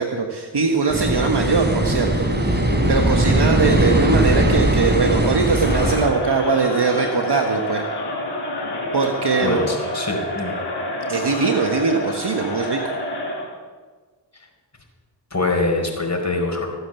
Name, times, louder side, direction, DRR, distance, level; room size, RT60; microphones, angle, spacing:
voice 1, 0.0-2.6 2.9-7.8 8.9-9.6 11.1-12.8, right 4 dB, 55° right, 3 dB, 1.5 m, -21 dB
sound 1, 0.9-6.1, right 1 dB, 20° right, 3.7 m, -19 dB
voice 2, 3.2-3.5 9.4-10.6 14.3-14.5 15.3-16.7, left 2 dB, 35° left, 2 dB, 4.8 m, -24 dB
Crowd, 5.5-13.5, left 1 dB, 60° left, 4.5 m, -28 dB
17.0 x 9.1 x 7.2 m, 1.4 s
cardioid pair, 45°, 47 cm